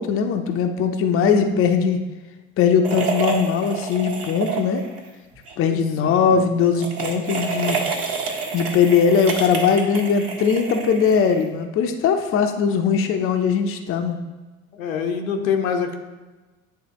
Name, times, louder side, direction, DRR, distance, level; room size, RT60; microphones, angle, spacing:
voice 1, 0.0-2.0 2.6-4.8 5.6-7.8 8.5-14.2, left 6 dB, 35° left, 5 dB, 0.7 m, -20 dB
sound 1, 2.8-5.0 5.3-5.5 6.6-11.6, right 5 dB, 35° right, 1.4 m, -28 dB
voice 2, 5.6-6.5 14.7-15.9, left 6 dB, 80° left, 4 dB, 0.9 m, -26 dB
9.5 x 3.5 x 3.0 m, 1.2 s
hypercardioid pair, 80°, 40 cm